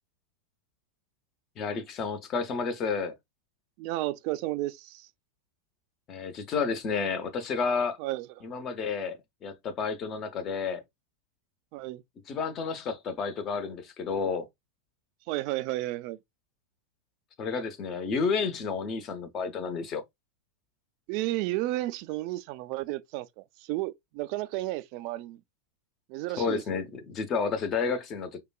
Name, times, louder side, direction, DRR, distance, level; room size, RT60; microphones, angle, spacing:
voice 1, 1.6-3.1 6.1-8.0 8.4-10.8 12.3-14.5 17.4-20.0 26.4-28.4, left 5 dB, 30° left, 0.7 m, -31 dB
voice 2, 3.8-5.1 8.0-8.4 11.7-12.0 15.3-16.2 21.1-25.4 26.1-26.6, right 17 dB, 45° right, 0.3 m, -32 dB
4.8 x 2.2 x 2.3 m
figure-of-eight pair, 90°, 0 cm